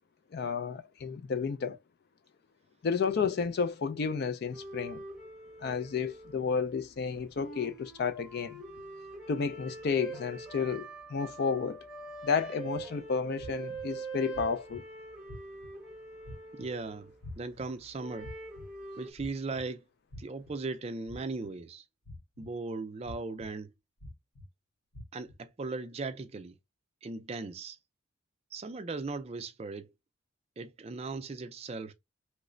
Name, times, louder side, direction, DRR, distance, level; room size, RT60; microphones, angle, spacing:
voice 1, 0.3-1.8 2.8-5.0 5.6-8.6 9.3-11.8 12.2-14.8, left 5 dB, 50° left, 0.3 m, -31 dB
sound 1, 4.4-6.9 7.1-17.3 17.9-19.1, right 3 dB, 5° right, 0.8 m, -44 dB
sound 2, 13.4-13.8 14.3-14.8 15.3-15.7 16.2-16.7 17.2-17.6 18.2-18.7 19.2-19.6 20.1-20.5 21.1-21.5 22.1-22.5 23.0-23.5 24.0-24.4 24.9-25.3, left 1 dB, 90° left, 1.0 m, -45 dB
voice 2, 16.5-18.3 19.0-19.8 20.2-21.8 22.4-23.7 25.1-26.6 27.0-27.8 28.5-29.9 30.6-31.9, right 3 dB, 30° right, 0.4 m, -38 dB
3.1 x 2.1 x 3.7 m
head